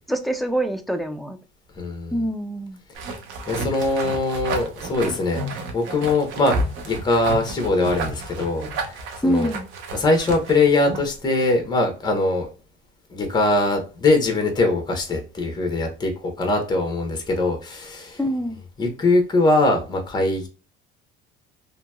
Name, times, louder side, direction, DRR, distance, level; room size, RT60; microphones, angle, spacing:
voice 1, 0.1-1.4 2.1-2.8 9.2-9.7 18.2-18.6, equal, ahead, 0.3 m, -25 dB
voice 2, 1.8-2.2 3.5-6.6 6.8-9.5 9.9-12.5 13.1-18.2 18.8-20.5, left 2 dB, 20° left, 0.9 m, -22 dB
sound 1, 2.9-11.2, right 2 dB, 65° right, 0.8 m, -31 dB
2.8 x 2.7 x 2.2 m
cardioid pair, 135°, 21 cm